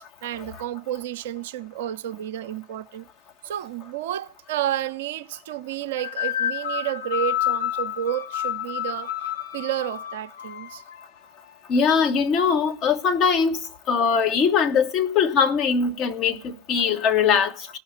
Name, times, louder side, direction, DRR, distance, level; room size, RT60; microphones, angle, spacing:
voice 1, 0.0-3.1 3.4-10.8, right 11 dB, 55° right, 0.6 m, -31 dB
sound 1, 6.0-11.0, left 11 dB, 60° left, 0.8 m, -29 dB
voice 2, 11.7-13.6 13.9-17.7, left 6 dB, 35° left, 1.2 m, -21 dB
16.5 x 5.7 x 8.2 m
figure-of-eight pair, 90°, 0 cm